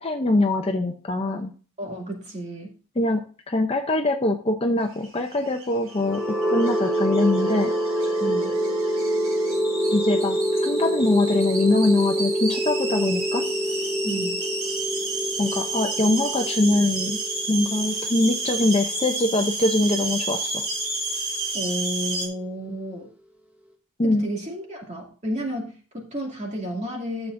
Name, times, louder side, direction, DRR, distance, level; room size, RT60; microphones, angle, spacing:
voice 1, 0.0-1.5 3.0-3.2 3.5-6.2 6.5-7.7 9.9-13.4 15.4-17.2 17.5-20.6 24.0-24.2, left 2 dB, 25° left, 5 dB, 0.7 m, -23 dB
voice 2, 1.8-2.7 8.2-8.5 14.0-14.4 21.5-23.1 24.0-27.3, right 1 dB, 35° right, 0 dB, 2.6 m, -31 dB
sound 1, 4.9-22.3, right 3 dB, 80° right, 4.5 m, -31 dB
sound 2, 5.9-19.8, equal, 5° right, 1.0 m, -26 dB
13.0 x 7.2 x 2.6 m, 0.39 s
head